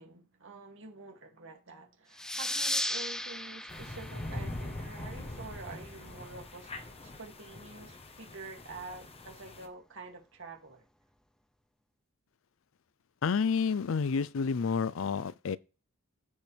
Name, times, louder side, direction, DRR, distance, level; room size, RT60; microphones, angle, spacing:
voice 1, 0.0-6.7 7.0-10.8, right 3 dB, 65° right, 2.3 m, -47 dB
sound 1, 2.2-5.4, left 1 dB, 5° left, 0.5 m, -36 dB
sound 2, 3.7-9.7, left 1 dB, 30° left, 1.1 m, -43 dB
voice 2, 13.2-15.6, left 5 dB, 70° left, 0.5 m, -29 dB
15.0 x 5.4 x 3.3 m
head